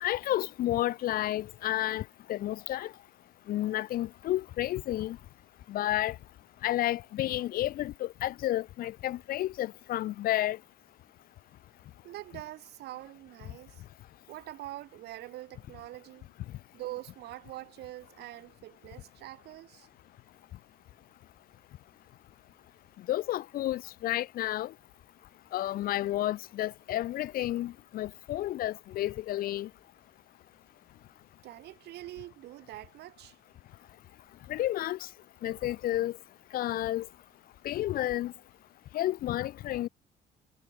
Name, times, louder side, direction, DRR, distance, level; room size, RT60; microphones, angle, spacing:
voice 1, 0.0-2.9 3.5-5.2 5.7-6.2 6.6-10.6 23.1-24.7 25.5-29.7 34.5-35.0 35.4-36.2 36.5-37.1 37.6-38.3 38.9-39.9, left 14 dB, 60° left, 0.5 m, -31 dB
voice 2, 12.0-13.8 14.3-16.3 16.7-19.9 31.4-33.4, right 16 dB, 75° right, 3.1 m, -44 dB
cardioid pair, 110°, 17 cm